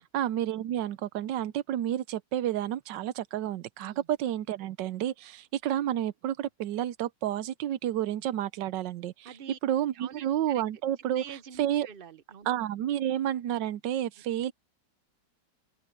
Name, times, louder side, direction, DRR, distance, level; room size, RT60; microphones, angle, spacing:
voice 1, 0.1-9.3 9.6-11.2 11.6-11.9 12.5-14.5, right 11 dB, 90° right, 1.4 m, -30 dB
voice 2, 9.2-9.6 9.9-10.6 11.1-12.5, right 8 dB, 55° right, 0.6 m, -46 dB
open air
omnidirectional pair, 1.9 m